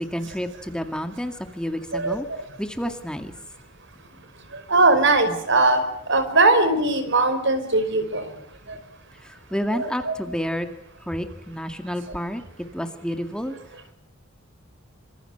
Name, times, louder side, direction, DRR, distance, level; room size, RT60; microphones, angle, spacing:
voice 1, 0.0-2.3 2.6-3.3 5.3-5.4 9.2-10.7 11.0-12.4 12.7-13.6, equal, 5° left, 6 dB, 2.1 m, -30 dB
voice 2, 4.5-5.8 6.1-8.3 8.7-8.8 9.7-10.1, right 2 dB, 60° right, 10 dB, 5.3 m, -20 dB
27.5 x 26.5 x 8.0 m, 0.72 s
head